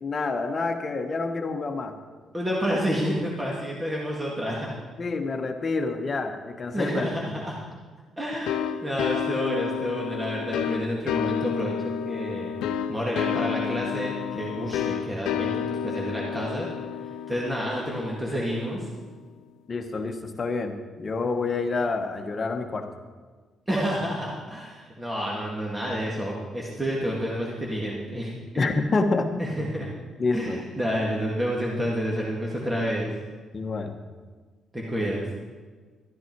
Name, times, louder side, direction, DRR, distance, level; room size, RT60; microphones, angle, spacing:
voice 1, 0.0-1.9 5.0-7.4 19.7-22.9 28.6-29.3 30.2-30.6 33.5-33.9, left 3 dB, 35° left, 5 dB, 1.3 m, -28 dB
voice 2, 2.3-4.8 6.7-7.6 8.2-12.5 12.9-16.7 17.3-18.9 23.7-28.6 29.4-29.9 30.3-33.1 34.7-35.2, equal, 15° right, -3 dB, 2.0 m, -29 dB
sound 1, 8.5-18.9, left 8 dB, 85° left, 0.5 m, -30 dB
13.0 x 10.0 x 4.7 m, 1.4 s
cardioid pair, 90°, 0 cm